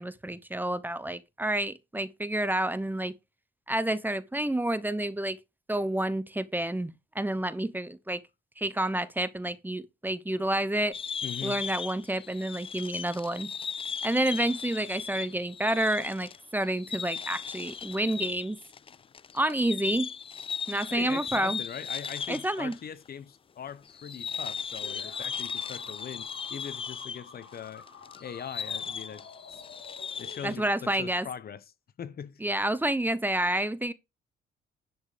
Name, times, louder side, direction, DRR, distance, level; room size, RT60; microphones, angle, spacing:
voice 1, 0.0-3.1 3.7-5.4 5.7-8.2 8.6-10.9 11.4-13.5 14.0-18.6 19.3-20.1 20.7-21.6 22.3-22.8 30.4-31.3 32.4-33.9, right 1 dB, 10° right, 0.9 m, -29 dB
sound 1, 10.9-22.8 23.1-23.2 23.9-30.5, left 6 dB, 25° left, 0.4 m, -37 dB
voice 2, 11.2-11.6 20.9-27.9 28.2-29.6 30.2-31.6 32.0-32.4, left 8 dB, 50° left, 1.0 m, -41 dB
sound 2, 24.8-30.9, left 5 dB, 65° left, 3.6 m, -50 dB
11.0 x 5.3 x 5.0 m
cardioid pair, 90°, 20 cm